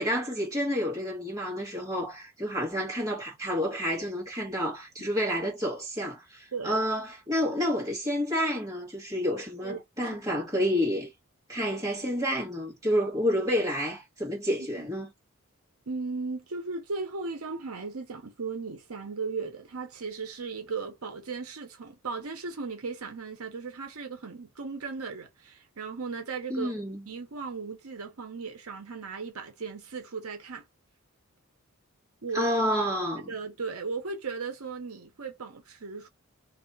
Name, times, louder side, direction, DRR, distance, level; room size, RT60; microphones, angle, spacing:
voice 1, 0.0-11.1 11.5-15.1 26.5-27.0 32.3-33.3, equal, 15° right, 1.9 m, -29 dB
voice 2, 15.9-26.7 27.1-30.6 32.2-32.5 33.3-36.1, right 4 dB, 80° right, 0.8 m, -36 dB
3.3 x 2.1 x 3.9 m
head